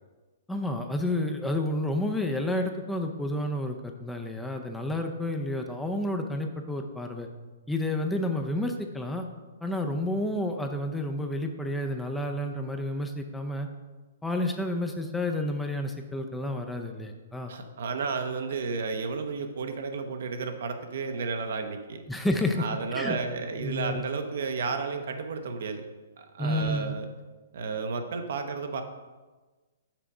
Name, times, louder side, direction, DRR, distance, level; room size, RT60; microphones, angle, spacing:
voice 1, 0.5-7.3 7.7-9.3 9.6-13.7 14.2-17.5 22.1-22.7 22.9-23.2 23.6-24.0 26.4-26.9, left 1 dB, 5° left, 4 dB, 0.5 m, -30 dB
voice 2, 17.5-22.0 22.6-25.8 26.2-27.1 27.5-28.8, right 4 dB, 70° right, 6 dB, 0.8 m, -32 dB
5.8 x 5.0 x 4.9 m, 1.3 s
hypercardioid pair, 135°, 0 cm